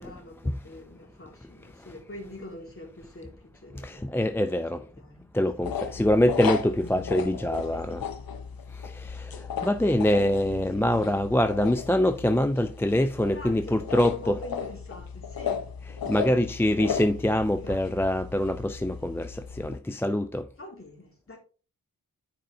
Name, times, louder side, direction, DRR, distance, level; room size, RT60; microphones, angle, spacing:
voice 1, 0.0-4.1 5.0-5.3 6.0-6.1 6.8-7.3 7.7-8.0 9.8-11.2 13.3-15.6 16.3-16.9 17.6-17.9 20.6-21.4, left 1 dB, 35° left, 3.3 m, -44 dB
voice 2, 3.8-4.8 5.3-8.0 8.8-14.4 16.1-20.4, left 1 dB, 5° left, 0.4 m, -25 dB
sound 1, 5.6-19.8, left 6 dB, 65° left, 0.8 m, -36 dB
8.9 x 5.2 x 3.3 m
cardioid pair, 55°, 37 cm